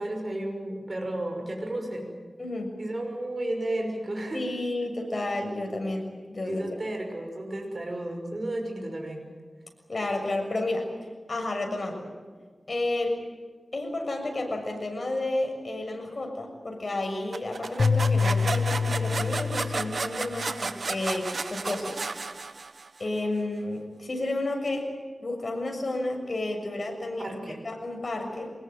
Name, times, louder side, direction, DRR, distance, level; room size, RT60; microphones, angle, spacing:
voice 1, 0.0-2.1 2.8-4.4 6.4-9.3 27.2-27.6, right 1 dB, 45° right, 2 dB, 6.1 m, -33 dB
voice 2, 2.4-2.8 4.3-6.6 9.9-10.9 11.3-12.1 12.7-13.2 13.7-22.1 23.0-24.9 25.2-28.5, left 2 dB, 50° left, 3 dB, 6.8 m, -31 dB
sound 1, 17.3-23.0, right 4 dB, 70° right, 1.2 m, -33 dB
sound 2, 17.8-20.3, left 5 dB, 70° left, 1.4 m, -26 dB
24.5 x 20.5 x 9.3 m, 1.5 s
wide cardioid pair, 80°, 0 cm